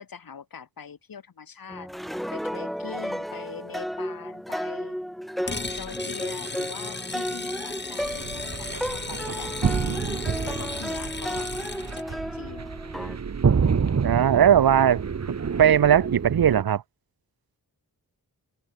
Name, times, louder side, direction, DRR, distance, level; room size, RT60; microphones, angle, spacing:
voice 1, 0.0-1.9 2.3-5.0 5.4-9.9 10.4-11.5 11.9-12.7, left 6 dB, 65° left, 3.0 m, -42 dB
sound 1, 1.7-13.2, equal, ahead, 1.2 m, -33 dB
sound 2, 5.5-12.1, left 3 dB, 30° left, 4.6 m, -36 dB
sound 3, 8.0-16.6, right 6 dB, 45° right, 1.3 m, -28 dB
voice 2, 14.0-15.0 15.6-16.8, right 9 dB, 70° right, 0.9 m, -18 dB
open air
wide cardioid pair, 150°, 37 cm